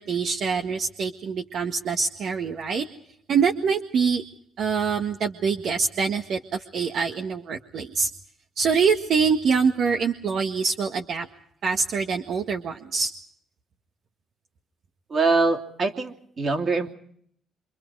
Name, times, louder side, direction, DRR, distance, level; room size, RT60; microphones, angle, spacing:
voice 1, 0.0-2.9 3.3-4.2 4.6-8.1 8.6-11.3 11.6-13.1, right 5 dB, 65° right, 3 dB, 1.8 m, -25 dB
voice 2, 15.1-16.9, right 3 dB, 45° right, 3 dB, 3.0 m, -23 dB
27.0 x 26.0 x 4.8 m, 0.67 s
cardioid pair, 90°, 0 cm